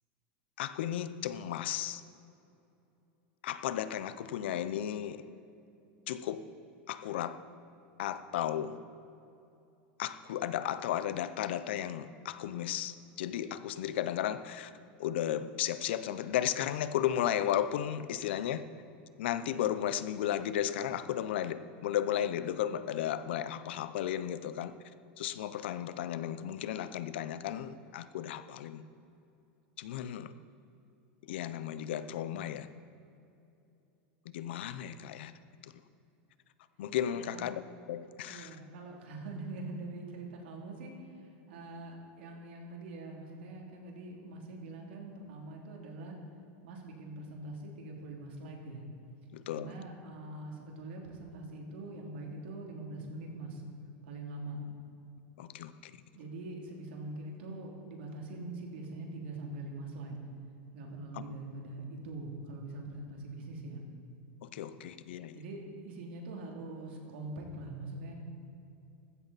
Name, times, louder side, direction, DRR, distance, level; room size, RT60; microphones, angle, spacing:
voice 1, 0.6-2.0 3.4-5.3 6.1-6.4 6.9-7.4 8.0-8.8 10.0-14.7 15.0-18.7 19.2-24.7 25.2-28.8 29.8-30.3 31.2-32.7 34.2-35.3 36.8-37.6 37.9-38.6 49.3-49.7 55.4-55.9 61.1-61.2 64.4-65.4, left 11 dB, 80° left, 13 dB, 0.7 m, -34 dB
voice 2, 37.1-37.5 38.3-46.2 46.6-48.8 49.5-53.6 54.0-54.6 56.1-60.2 60.7-63.8 65.3-68.1, right 2 dB, 80° right, 0 dB, 2.9 m, -43 dB
15.0 x 13.5 x 4.1 m, 2.7 s
supercardioid pair, 160°, 6 cm